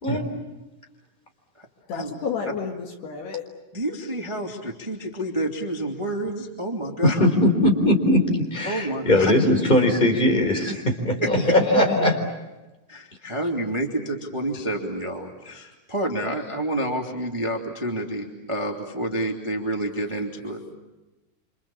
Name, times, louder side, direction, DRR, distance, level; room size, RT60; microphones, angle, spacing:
voice 1, 1.9-3.5, left 6 dB, 60° left, 3 dB, 3.7 m, -31 dB
voice 2, 3.7-7.2 8.6-9.3 12.9-20.7, right 1 dB, 15° right, 1 dB, 1.0 m, -29 dB
voice 3, 7.0-8.2 8.5-12.2, left 1 dB, 10° left, 4 dB, 3.4 m, -20 dB
29.5 x 27.0 x 7.3 m, 1.1 s
omnidirectional pair, 5.8 m